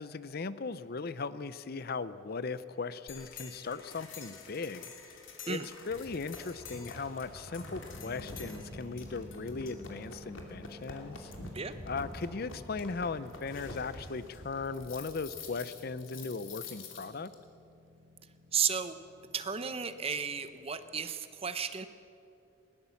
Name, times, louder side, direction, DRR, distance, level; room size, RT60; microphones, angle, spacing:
voice 1, 0.0-4.8 5.4-5.6 5.9-11.3 11.9-17.3, left 4 dB, 50° left, 15 dB, 0.6 m, -38 dB
sound 1, 3.1-17.3, left 3 dB, 85° left, 2.8 m, -47 dB
sound 2, 7.9-21.1, left 1 dB, 55° right, 5.3 m, -55 dB
voice 2, 18.5-19.0 19.3-21.9, right 7 dB, 30° right, 11 dB, 0.8 m, -33 dB
20.0 x 18.5 x 7.2 m, 2.7 s
head